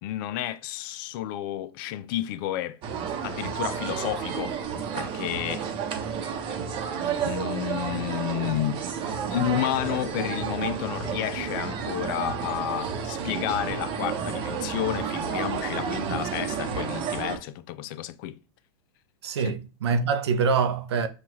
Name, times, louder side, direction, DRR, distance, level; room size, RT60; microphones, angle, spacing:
voice 1, 0.0-2.8 3.2-4.5 4.9-5.7 7.2-8.8 9.3-18.4 19.4-19.5, left 13 dB, 50° left, 0.4 m, -31 dB
sound 1, 2.8-17.4, right 7 dB, 40° right, 0.8 m, -31 dB
voice 2, 19.2-21.1, right 5 dB, 85° right, 0.6 m, -25 dB
5.8 x 2.4 x 2.9 m
hypercardioid pair, 110°, 14 cm